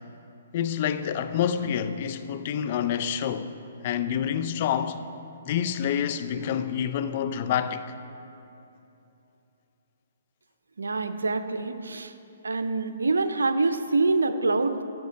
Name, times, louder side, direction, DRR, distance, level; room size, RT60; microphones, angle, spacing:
voice 1, 0.5-3.5 3.8-5.0 5.4-7.8, left 9 dB, 45° left, 0.5 m, -27 dB
voice 2, 10.8-12.1 12.4-14.8, right 3 dB, 90° right, 0.6 m, -25 dB
13.5 x 6.6 x 4.6 m
hypercardioid pair, 145°, 0 cm